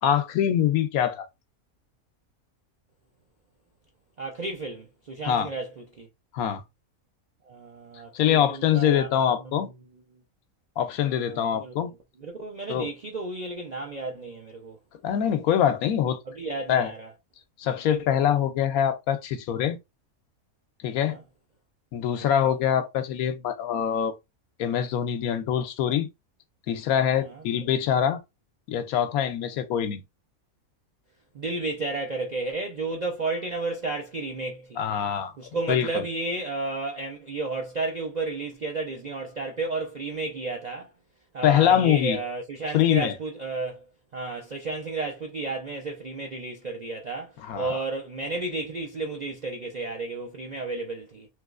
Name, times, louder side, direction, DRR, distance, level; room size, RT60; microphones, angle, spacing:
voice 1, 0.0-1.3 5.2-5.5 6.3-6.6 8.1-9.7 10.8-11.9 12.7-12.9 15.0-16.2 16.7-16.9 17.6-19.8 20.8-21.2 21.9-24.1 24.6-26.1 26.7-28.2 28.7-30.0 34.8-35.3 35.7-36.0 41.4-42.2 42.7-43.1 47.5-47.8, left 9 dB, 85° left, 1.1 m, -24 dB
voice 2, 4.2-6.1 7.4-9.7 11.1-11.7 12.2-14.8 16.3-17.1 21.0-21.2 22.1-22.3 27.2-27.4 31.3-34.8 35.4-40.9 41.3-43.8 44.1-51.3, right 3 dB, 65° right, 0.4 m, -32 dB
3.2 x 3.0 x 2.4 m
omnidirectional pair, 1.5 m